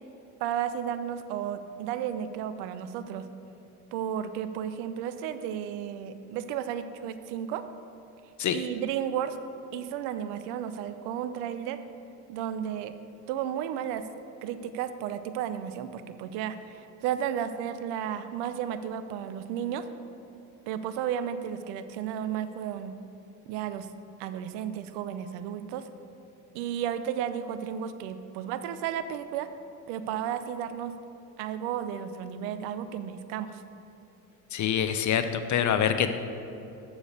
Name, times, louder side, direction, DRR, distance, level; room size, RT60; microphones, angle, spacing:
voice 1, 0.4-3.3 3.9-7.6 8.5-9.4 9.7-11.8 12.3-12.9 13.3-14.0 14.4-19.8 20.7-23.0 23.5-23.9 24.2-25.9 26.5-29.5 29.9-30.9 31.4-33.6, right 9 dB, 70° right, 11 dB, 0.7 m, -33 dB
voice 2, 34.5-36.1, left 9 dB, 40° left, 9 dB, 0.6 m, -25 dB
7.2 x 6.9 x 6.5 m, 2.9 s
hypercardioid pair, 55°, 43 cm